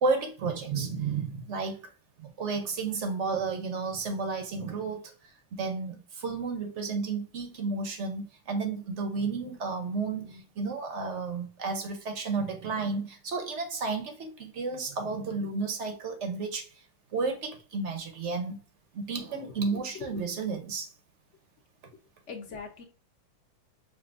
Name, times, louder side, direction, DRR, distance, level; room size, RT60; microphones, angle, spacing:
voice 1, 0.0-1.9 2.2-5.1 5.5-16.7 17.1-18.6 18.9-20.9, right 4 dB, 55° right, 0.8 m, -32 dB
voice 2, 19.7-20.2 22.3-22.8, left 6 dB, 60° left, 0.8 m, -41 dB
5.9 x 2.7 x 2.5 m
omnidirectional pair, 2.1 m